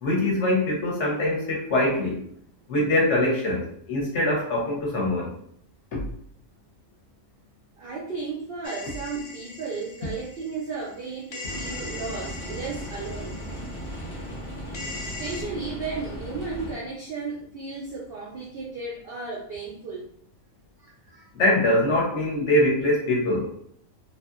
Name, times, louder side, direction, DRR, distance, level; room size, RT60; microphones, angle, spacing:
voice 1, 0.0-2.2 2.7-5.3 5.9-6.0 21.3-23.5, left 1 dB, 60° left, -3 dB, 0.9 m, -23 dB
voice 2, 7.8-13.7 15.0-20.1 20.8-21.3, right 4 dB, 80° right, -3 dB, 0.5 m, -34 dB
sound 1, 8.6-11.0 11.3-15.4, left 3 dB, 80° left, 0.4 m, -40 dB
sound 2, 11.5-16.7, equal, 30° left, 0.5 m, -36 dB
2.7 x 2.5 x 2.4 m, 0.68 s
omnidirectional pair, 1.5 m